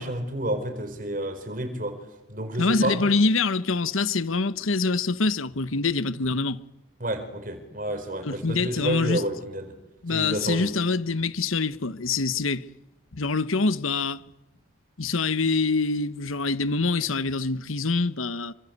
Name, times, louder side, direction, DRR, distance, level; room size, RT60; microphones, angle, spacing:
voice 1, 0.0-2.0 2.3-3.0 7.0-9.7 10.1-10.7, right 1 dB, 40° right, 4.8 m, -30 dB
voice 2, 2.6-6.6 8.2-9.2 10.0-12.6 13.1-14.2 15.0-18.5, left 3 dB, 85° left, 1.1 m, -25 dB
27.5 x 25.5 x 8.3 m
head